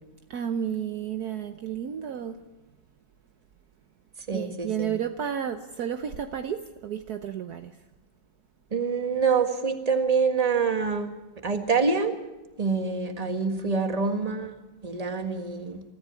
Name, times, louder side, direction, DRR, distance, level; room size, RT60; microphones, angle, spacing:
voice 1, 0.3-2.4 4.3-7.7, right 8 dB, 65° right, 7 dB, 1.3 m, -32 dB
voice 2, 4.3-4.9 8.7-11.1 11.4-12.1 12.6-14.5 14.8-15.8, right 5 dB, 20° right, 6 dB, 1.7 m, -26 dB
24.0 x 14.0 x 9.0 m, 1.1 s
omnidirectional pair, 1.9 m